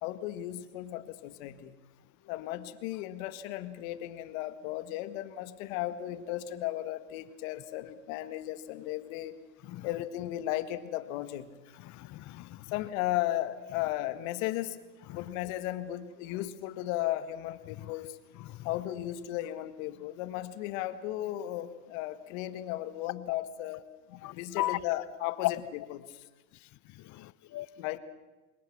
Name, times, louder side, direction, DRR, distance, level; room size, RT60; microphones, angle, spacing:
voice 1, 0.0-1.8 2.3-9.3 9.8-11.5 12.7-14.8 15.1-18.2 18.6-23.8 24.1-26.1 27.8-28.0, left 14 dB, 70° left, 11 dB, 1.9 m, -35 dB
voice 2, 11.8-12.6 15.1-15.2 18.4-18.7 24.2-24.8 25.4-25.5 27.0-27.7, left 17 dB, 45° left, 20 dB, 0.8 m, -35 dB
26.0 x 21.5 x 6.1 m, 1.2 s
supercardioid pair, 100°, 41 cm